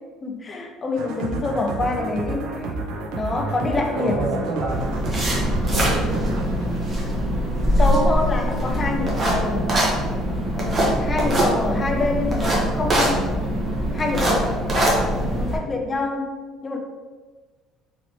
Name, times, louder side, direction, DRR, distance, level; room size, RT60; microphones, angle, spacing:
voice 1, 0.2-2.7 3.1-4.3 7.8-9.8 10.5-13.3 13.9-16.4 16.6-16.8, left 2 dB, 20° left, 3 dB, 0.3 m, -26 dB
sound 1, 1.0-7.7, right 3 dB, 80° right, 0.4 m, -31 dB
voice 2, 3.6-4.8 5.7-6.4 11.1-11.6, right 2 dB, 60° right, -1 dB, 0.8 m, -29 dB
sound 2, 4.7-15.6, equal, 25° right, 0.6 m, -22 dB
3.0 x 2.9 x 2.7 m, 1.3 s
cardioid pair, 160°, 0 cm